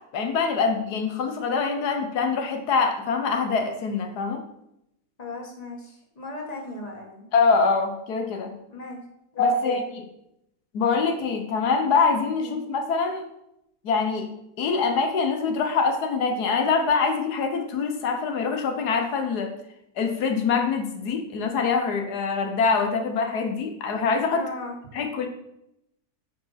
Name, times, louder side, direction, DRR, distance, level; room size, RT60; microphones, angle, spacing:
voice 1, 0.1-4.4 7.3-8.5 9.4-9.8 10.7-13.2 13.8-14.3 14.6-19.5 20.0-24.4 24.9-25.3, left 5 dB, 85° left, 4 dB, 1.5 m, -24 dB
voice 2, 5.2-7.3 8.7-9.0 9.3-9.8 12.4-12.6 24.3-24.7, left 3 dB, 25° left, -1 dB, 1.8 m, -37 dB
9.1 x 4.9 x 5.7 m, 0.82 s
omnidirectional pair, 1.6 m